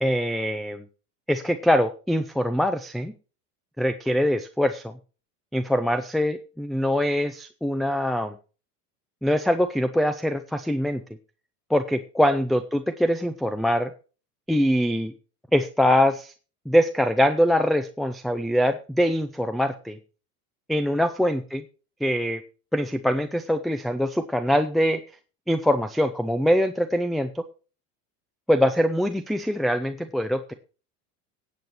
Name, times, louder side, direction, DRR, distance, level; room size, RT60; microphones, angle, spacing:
voice 1, 0.0-0.8 1.3-3.1 3.8-4.9 5.5-8.3 9.2-11.0 11.7-13.9 14.5-15.1 15.5-16.3 16.7-20.0 20.7-21.6 22.0-22.4 22.7-25.0 25.5-27.4 28.5-30.5, equal, ahead, 10 dB, 0.5 m, -23 dB
18.5 x 8.2 x 3.0 m, 0.35 s
hypercardioid pair, 95°, 47 cm